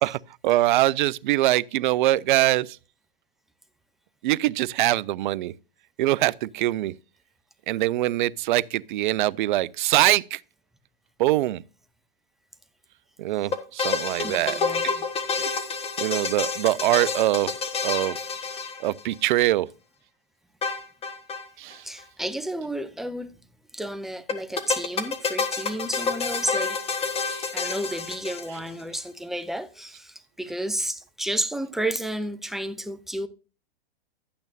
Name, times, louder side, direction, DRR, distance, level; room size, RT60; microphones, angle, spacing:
voice 1, 0.0-2.8 4.2-5.5 6.0-6.9 7.7-10.4 11.2-11.6 13.2-14.6 15.4-15.5 16.0-17.5 17.8-18.2 18.8-19.7 21.6-21.8 27.3-27.4, right 16 dB, 55° right, 0.5 m, -23 dB
sound 1, 13.5-19.3 20.6-21.5 21.7-21.8 22.0-22.1 24.3-28.8, left 5 dB, 20° left, 1.4 m, -28 dB
voice 2, 14.2-15.0 16.9-17.0 21.8-23.3 23.7-26.8 27.5-33.3, right 1 dB, ahead, 0.6 m, -31 dB
12.0 x 8.6 x 2.7 m
hypercardioid pair, 115°, 29 cm